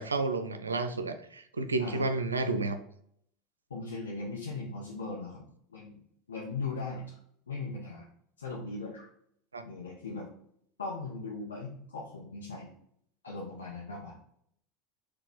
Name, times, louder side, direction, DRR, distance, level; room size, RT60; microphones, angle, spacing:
voice 1, 0.0-2.8 9.5-9.7, right 3 dB, 80° right, 9 dB, 0.4 m, -31 dB
voice 2, 3.7-5.4 5.7-6.0 6.3-7.0 7.5-8.1 8.4-9.0 9.6-10.3 10.8-12.7 13.2-14.2, left 3 dB, 80° left, -4 dB, 0.7 m, -38 dB
4.3 x 2.2 x 4.2 m, 0.69 s
figure-of-eight pair, 75°, 0 cm